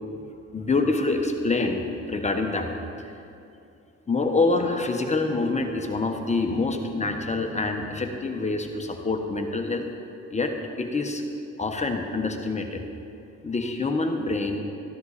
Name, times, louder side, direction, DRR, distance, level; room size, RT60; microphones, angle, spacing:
voice 1, 0.3-2.7 4.1-9.9 10.3-11.2 11.6-12.8 13.4-14.6, left 3 dB, 25° left, 4 dB, 1.2 m, -26 dB
13.5 x 12.5 x 4.2 m, 2.6 s
cardioid pair, 90°, 30 cm